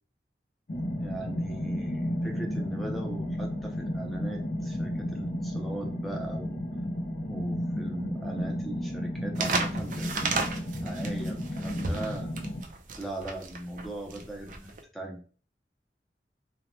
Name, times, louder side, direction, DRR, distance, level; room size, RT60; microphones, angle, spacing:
sound 1, 0.7-12.6, equal, 45° left, 0.6 m, -33 dB
voice 1, 1.0-6.6 7.3-10.5 10.8-12.4 13.0-15.2, right 1 dB, ahead, 0 dB, 0.5 m, -39 dB
sound 2, 9.3-14.8, right 3 dB, 45° right, 0.4 m, -33 dB
2.7 x 2.1 x 2.9 m, 0.40 s
head